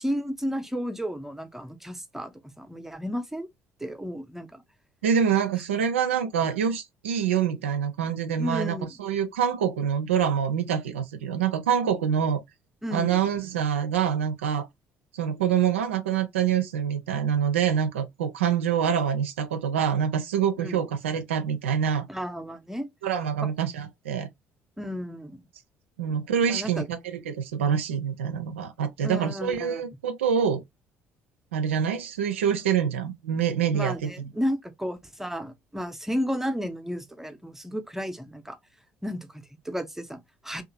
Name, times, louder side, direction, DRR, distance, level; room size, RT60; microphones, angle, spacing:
voice 1, 0.0-3.5 3.8-4.6 8.4-8.9 12.8-13.3 20.6-20.8 22.1-22.9 23.4-23.5 24.8-25.4 26.5-26.9 29.0-29.8 33.7-38.6 39.0-40.6, equal, 5° right, 0.6 m, -33 dB
voice 2, 5.0-12.4 12.9-14.7 15.1-22.1 23.0-24.3 26.0-30.6 31.5-34.1, right 8 dB, 75° right, 0.4 m, -26 dB
2.8 x 2.3 x 2.6 m
figure-of-eight pair, 50°, 7 cm